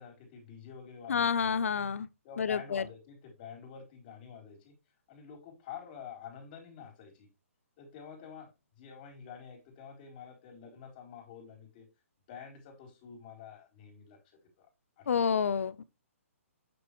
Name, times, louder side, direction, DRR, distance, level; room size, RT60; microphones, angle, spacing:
voice 1, 0.0-1.8 2.2-4.7 5.1-7.3 7.8-8.5 8.8-11.9 12.3-14.2 14.6-14.7 15.0-15.4, left 7 dB, 40° left, 4.0 m, -48 dB
voice 2, 1.1-2.1 2.4-2.8 15.1-15.8, left 6 dB, 65° left, 0.8 m, -29 dB
8.8 x 7.0 x 3.2 m
hypercardioid pair, 135°, 8 cm